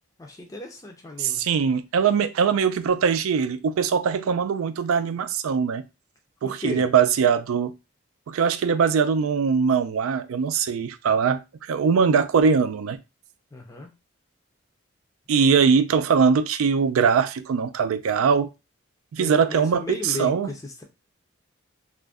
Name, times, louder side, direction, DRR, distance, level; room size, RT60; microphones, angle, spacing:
voice 1, 0.2-1.4 6.4-6.9 13.5-13.9 19.2-20.8, left 2 dB, 15° left, 0.4 m, -35 dB
voice 2, 1.2-5.8 6.4-7.7 8.3-13.0 15.3-18.5 19.1-20.5, right 6 dB, 90° right, 0.3 m, -21 dB
2.5 x 2.1 x 3.4 m
head